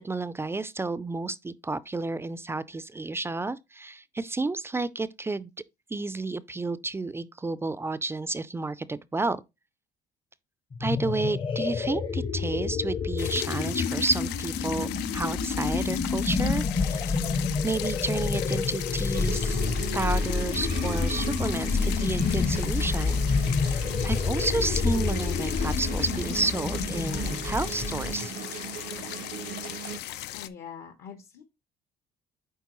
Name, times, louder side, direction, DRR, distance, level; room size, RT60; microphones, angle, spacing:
voice 1, 0.0-5.5 5.9-9.4 10.8-17.4 17.6-19.6 19.9-28.3, right 3 dB, 15° right, 0.3 m, -31 dB
sound 1, 10.7-28.3, left 4 dB, 30° left, 0.7 m, -28 dB
sound 2, 13.2-30.5, left 14 dB, 85° left, 0.5 m, -37 dB
sound 3, 19.1-30.0, right 9 dB, 70° right, 0.7 m, -38 dB
voice 2, 30.3-31.4, left 7 dB, 65° left, 1.0 m, -43 dB
8.2 x 4.5 x 3.0 m
cardioid pair, 110°, 17 cm